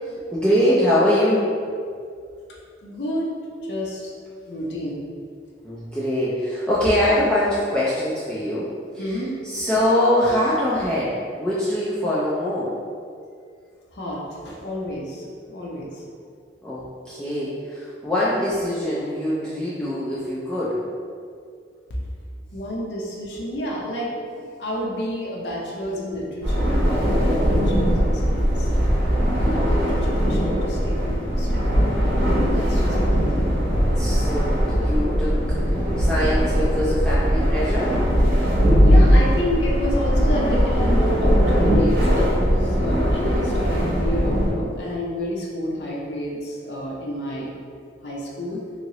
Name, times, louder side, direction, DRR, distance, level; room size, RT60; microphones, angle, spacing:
voice 1, 0.3-1.5 5.6-12.7 16.6-20.8 34.0-35.6 36.0-38.0, left 1 dB, 5° left, -9 dB, 0.3 m, -23 dB
voice 2, 2.8-3.3 3.6-4.1 4.5-5.0 9.0-9.3 13.9-16.0 21.9-22.0 22.5-28.7 29.4-31.6 32.5-33.5 38.8-47.5 48.0-48.6, equal, 65° left, -4 dB, 0.6 m, -30 dB
sound 1, 26.4-44.5, equal, 60° right, 0.8 m, -20 dB
2.9 x 2.7 x 2.9 m, 2.2 s
head